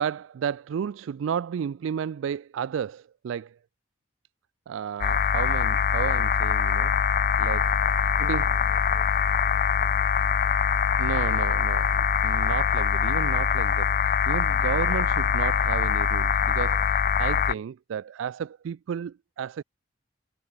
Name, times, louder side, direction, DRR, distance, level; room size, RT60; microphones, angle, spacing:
voice 1, 0.0-3.6 4.7-6.9 7.4-7.6 8.2-8.5 11.0-19.6, right 8 dB, 85° right, 0.3 m, -32 dB
sound 1, 5.0-17.5, left 7 dB, 45° left, 0.4 m, -23 dB
voice 2, 7.3-10.7 11.0-11.2, right 2 dB, 55° right, 5.9 m, -56 dB
head